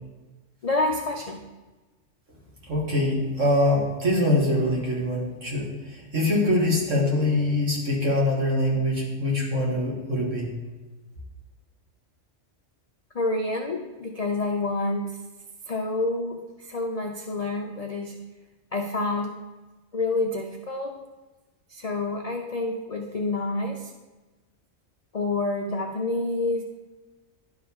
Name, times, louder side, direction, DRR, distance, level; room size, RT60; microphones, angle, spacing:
voice 1, 0.6-1.4 13.1-15.0 15.7-18.1 18.7-19.3 19.9-21.0 21.7-23.9 25.1-26.6, left 2 dB, 50° left, 2 dB, 0.4 m, -28 dB
voice 2, 2.7-10.5, left 1 dB, 70° right, -5 dB, 2.5 m, -24 dB
11.0 x 4.8 x 3.6 m, 1.2 s
omnidirectional pair, 1.3 m